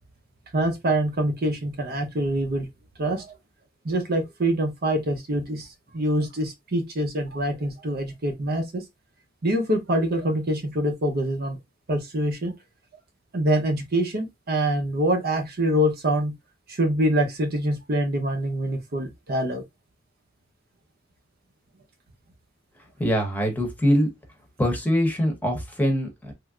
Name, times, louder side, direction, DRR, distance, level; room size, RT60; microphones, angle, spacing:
voice 1, 0.5-2.7 3.0-3.3 3.8-5.7 5.9-8.8 9.4-11.6 11.9-12.5 13.3-16.3 16.7-19.6, right 1 dB, 55° right, 0.8 m, -25 dB
voice 2, 23.0-24.1 24.6-26.3, equal, 10° left, 0.9 m, -23 dB
3.2 x 2.6 x 2.4 m
head